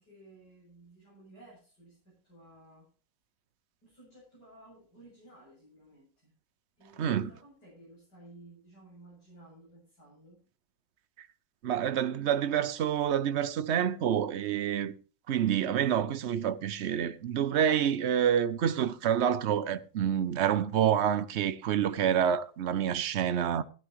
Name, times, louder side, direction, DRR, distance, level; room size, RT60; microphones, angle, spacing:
voice 1, 0.0-2.9 3.8-6.3 6.8-10.4, right 2 dB, 60° left, 8.8 m, -55 dB
voice 2, 7.0-7.3 11.6-14.9 15.3-23.6, right 9 dB, 75° right, 0.6 m, -28 dB
16.0 x 12.0 x 3.1 m
omnidirectional pair, 2.0 m